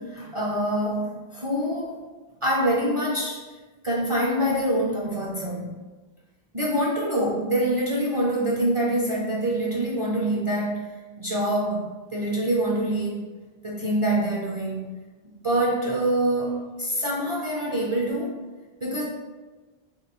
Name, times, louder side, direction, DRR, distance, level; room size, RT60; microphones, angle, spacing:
voice 1, 0.0-2.0 2.4-3.4 3.8-5.9 6.5-10.9 11.2-13.2 13.6-14.9 15.4-18.4 18.8-19.0, right 1 dB, 35° right, -5 dB, 0.5 m, -25 dB
3.1 x 2.9 x 4.2 m, 1.2 s
omnidirectional pair, 1.1 m